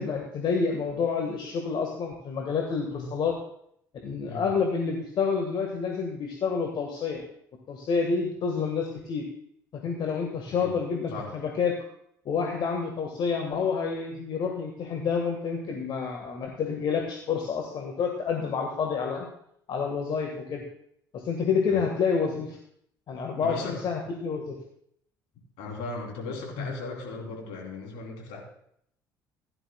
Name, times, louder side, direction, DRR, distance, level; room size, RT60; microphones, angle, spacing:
voice 1, 0.0-3.3 4.0-7.2 7.7-9.2 9.7-11.8 12.2-19.3 19.7-20.6 21.1-22.6 23.1-24.5 26.6-26.7, left 5 dB, 45° left, 2 dB, 1.5 m, -28 dB
voice 2, 23.4-23.8 25.6-28.4, left 3 dB, 65° left, -1 dB, 3.2 m, -37 dB
16.0 x 11.0 x 2.3 m, 0.70 s
figure-of-eight pair, 55°, 11 cm